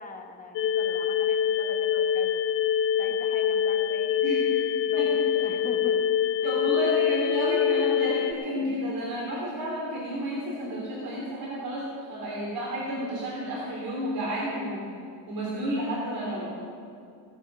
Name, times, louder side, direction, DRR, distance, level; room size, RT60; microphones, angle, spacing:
voice 1, 0.0-2.4 3.0-4.2 4.9-5.0 5.4-6.0 6.4-6.8, left 3 dB, 20° left, 3 dB, 1.1 m, -42 dB
sound 1, 0.6-8.3, left 9 dB, 70° left, 0.7 m, -25 dB
voice 2, 6.4-14.9 15.3-16.6, equal, 50° right, -6 dB, 3.4 m, -31 dB
17.5 x 8.3 x 6.2 m, 2.4 s
cardioid pair, 175°, 45 cm